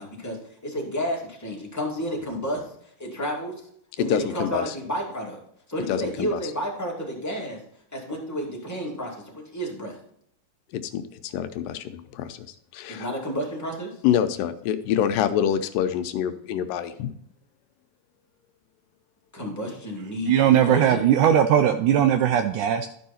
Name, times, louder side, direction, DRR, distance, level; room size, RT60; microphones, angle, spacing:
voice 1, 0.0-0.4 0.6-2.6 3.0-3.5 4.0-5.4 5.7-7.6 7.9-10.0 12.9-13.9 19.3-21.0, equal, 5° left, -3 dB, 1.4 m, -31 dB
voice 2, 4.1-4.7 5.9-6.4 10.9-12.5 12.7-13.1 14.0-17.1, left 9 dB, 85° left, 9 dB, 2.3 m, -26 dB
voice 3, 20.3-22.9, right 10 dB, 80° right, 9 dB, 1.8 m, -19 dB
12.0 x 5.5 x 4.2 m, 0.70 s
omnidirectional pair, 4.0 m